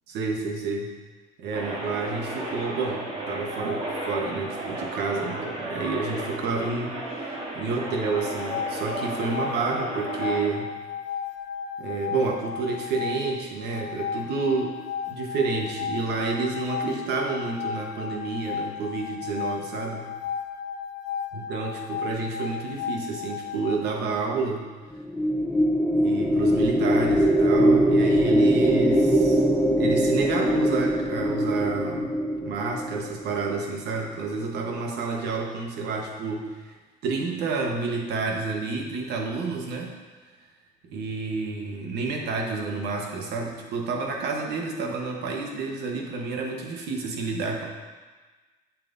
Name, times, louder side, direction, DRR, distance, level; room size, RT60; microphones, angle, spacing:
voice 1, 0.1-0.9 1.4-10.7 11.8-14.8 15.1-20.1 21.3-24.7 25.9-29.4 29.7-32.1 32.4-36.7 37.0-39.9 40.9-47.7, right 4 dB, 80° right, 1 dB, 1.2 m, -29 dB
sound 1, 1.5-10.5, right 1 dB, 45° right, 2.4 m, -34 dB
sound 2, 8.0-23.8, left 7 dB, 85° left, 0.5 m, -34 dB
sound 3, 24.9-33.4, right 1 dB, ahead, 0.9 m, -22 dB
8.5 x 7.1 x 2.7 m, 1.3 s
cardioid pair, 110°, 17 cm